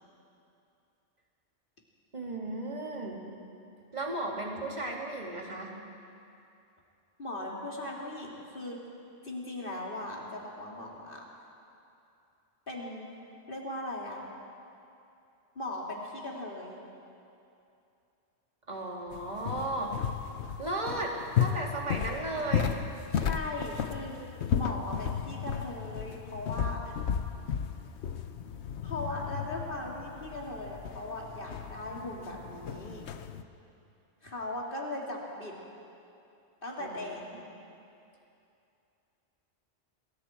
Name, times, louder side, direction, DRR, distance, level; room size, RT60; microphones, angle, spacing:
voice 1, 2.1-3.2 3.9-5.7 18.7-20.0 20.6-22.7 36.8-37.4, right 2 dB, 40° right, -1 dB, 2.7 m, -35 dB
voice 2, 7.2-8.8 9.2-11.2 12.7-13.1 13.5-14.2 15.5-16.8 23.1-24.2 24.5-27.0 28.8-33.1 34.2-35.6 36.6-37.2, left 1 dB, 50° left, -2 dB, 3.2 m, -38 dB
sound 1, 19.1-33.4, left 8 dB, 80° left, 1.1 m, -34 dB
28.0 x 20.5 x 4.5 m, 2.7 s
omnidirectional pair, 1.1 m